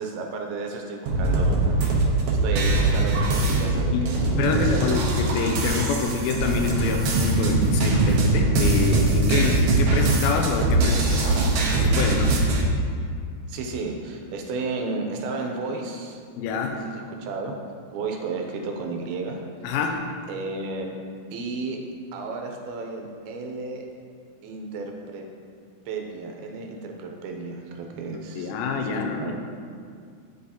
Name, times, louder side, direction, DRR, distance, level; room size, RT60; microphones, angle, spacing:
voice 1, 0.0-4.2 4.5-5.0 13.5-16.2 16.8-17.6 17.9-19.4 20.3-21.0 21.3-21.8 22.1-23.9 24.4-25.2 25.9-28.5 28.9-29.3, right 3 dB, 90° right, 2 dB, 2.7 m, -33 dB
sound 1, 1.1-12.6, right 2 dB, 70° right, 1.7 m, -22 dB
voice 2, 3.9-12.4 16.3-16.8 19.6-20.0 28.4-29.3, left 4 dB, 85° left, 3 dB, 2.5 m, -27 dB
11.5 x 4.7 x 2.8 m, 2.2 s
omnidirectional pair, 4.3 m